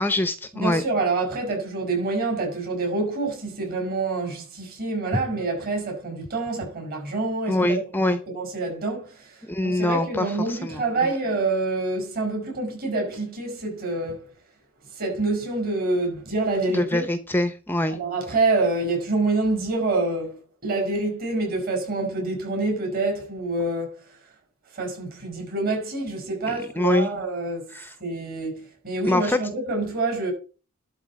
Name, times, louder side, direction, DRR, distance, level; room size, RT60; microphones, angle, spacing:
voice 1, 0.0-0.8 7.5-8.2 9.5-11.1 16.7-18.0 26.5-27.1 27.7-27.9 29.1-29.4, left 1 dB, 10° left, 0.6 m, -24 dB
voice 2, 0.5-14.3 14.9-17.1 17.9-24.0 24.7-27.7 28.0-30.3, right 3 dB, 45° right, 5.5 m, -27 dB
12.0 x 4.4 x 7.2 m
head